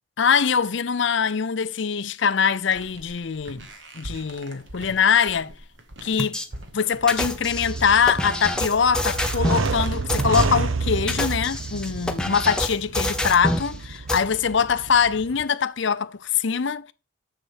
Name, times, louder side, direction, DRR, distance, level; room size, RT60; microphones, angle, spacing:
voice 1, 0.2-3.7 3.9-5.5 6.0-6.4 6.7-16.9, left 6 dB, 60° left, 0.6 m, -23 dB
sound 1, 2.6-12.5, right 1 dB, 65° right, 1.7 m, -40 dB
sound 2, 6.2-6.5 7.1-9.7 10.1-10.4 11.0-13.7 14.1-14.2, left 1 dB, 5° left, 0.8 m, -27 dB
sound 3, 6.9-15.4, right 4 dB, 80° right, 0.8 m, -30 dB
7.0 x 6.8 x 5.0 m
head